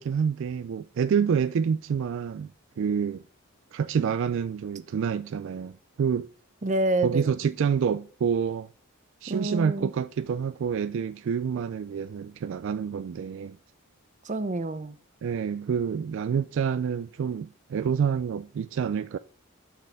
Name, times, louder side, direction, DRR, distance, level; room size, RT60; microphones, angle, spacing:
voice 1, 0.0-2.5 2.8-3.2 3.7-6.3 7.0-8.7 9.2-13.6 15.2-19.2, right 7 dB, 60° right, 0.3 m, -27 dB
voice 2, 6.6-7.4 9.3-9.9 14.2-15.0, right 2 dB, 35° right, 0.7 m, -27 dB
11.5 x 4.4 x 3.5 m
head